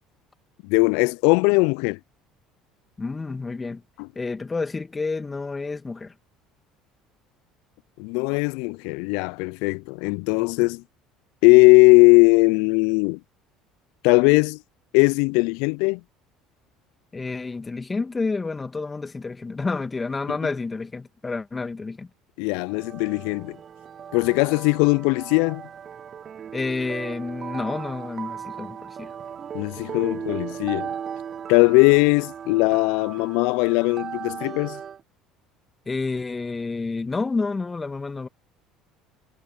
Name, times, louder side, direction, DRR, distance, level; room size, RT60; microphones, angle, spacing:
voice 1, 0.6-2.0 4.0-4.1 8.0-10.8 11.4-13.2 14.0-14.6 14.9-16.0 20.3-20.4 22.4-23.6 24.1-25.6 29.5-30.9 31.5-34.8, left 29 dB, 70° left, 0.5 m, -19 dB
voice 2, 3.0-3.8 4.2-6.1 17.1-22.1 26.5-29.1 35.9-38.3, left 3 dB, 20° left, 2.2 m, -29 dB
sound 1, 22.7-35.0, right 8 dB, 40° right, 0.7 m, -37 dB
hypercardioid pair, 65°, 0 cm